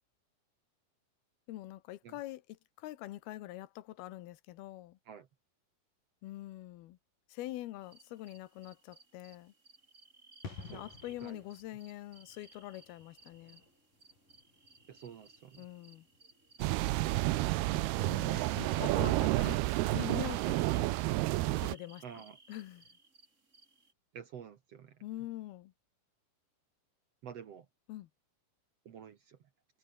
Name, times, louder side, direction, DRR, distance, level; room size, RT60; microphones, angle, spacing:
voice 1, 1.5-5.0 6.2-7.0 7.3-9.5 10.7-13.6 15.6-16.1 18.0-20.9 21.6-22.2 22.5-22.9 25.0-25.7 27.9-28.1, left 15 dB, 80° left, 3.0 m, -44 dB
sound 1, 7.8-23.9, right 3 dB, 20° right, 3.5 m, -61 dB
sound 2, 10.4-16.9 17.2-17.4, left 4 dB, 55° left, 7.5 m, -53 dB
voice 2, 14.9-15.7 17.1-18.0 18.3-18.9 22.0-22.4 24.1-25.0 27.2-27.7 28.9-29.4, right 8 dB, 55° right, 1.8 m, -49 dB
sound 3, 16.6-21.7, right 18 dB, 90° right, 2.8 m, -30 dB
omnidirectional pair, 4.4 m